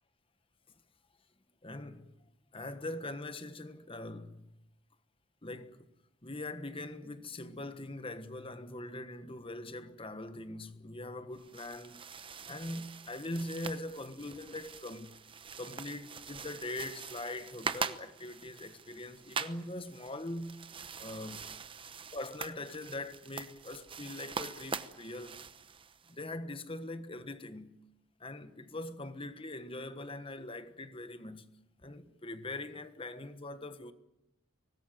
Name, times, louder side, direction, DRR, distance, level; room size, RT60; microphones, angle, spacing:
voice 1, 1.6-2.1 2.5-4.5 5.4-5.9 6.2-12.1 12.5-15.2 15.6-20.7 21.0-21.5 22.1-25.4 26.1-27.8 28.2-31.5 31.8-33.9, left 2 dB, 25° left, 1.4 m, -42 dB
sound 1, 11.3-26.2, right 5 dB, 25° right, 0.9 m, -43 dB
24.5 x 19.5 x 9.4 m
head